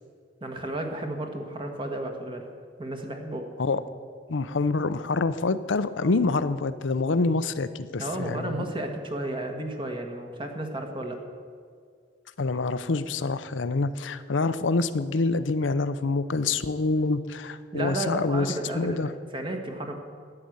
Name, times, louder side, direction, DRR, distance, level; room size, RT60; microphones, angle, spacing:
voice 1, 0.4-2.5 2.8-3.5 8.0-11.2 17.7-20.0, right 1 dB, 30° right, 4 dB, 1.4 m, -33 dB
voice 2, 4.3-8.6 12.4-19.1, left 3 dB, 85° left, 13 dB, 0.6 m, -26 dB
12.0 x 9.9 x 7.9 m, 2.1 s
head